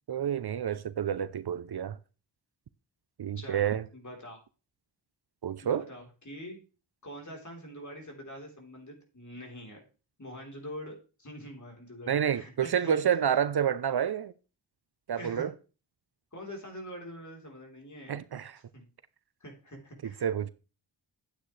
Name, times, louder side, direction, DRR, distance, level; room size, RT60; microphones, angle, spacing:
voice 1, 0.1-2.0 3.2-3.8 5.4-5.9 12.1-14.3 15.1-15.5 18.1-18.6 20.0-20.5, right 8 dB, 60° right, 0.6 m, -29 dB
voice 2, 3.4-4.4 5.6-6.6 7.0-9.8 10.2-13.0 15.1-15.5 16.3-18.2 18.7-18.8 19.4-20.3, equal, 40° left, 3.9 m, -44 dB
10.0 x 8.8 x 3.3 m
cardioid pair, 45°, 45 cm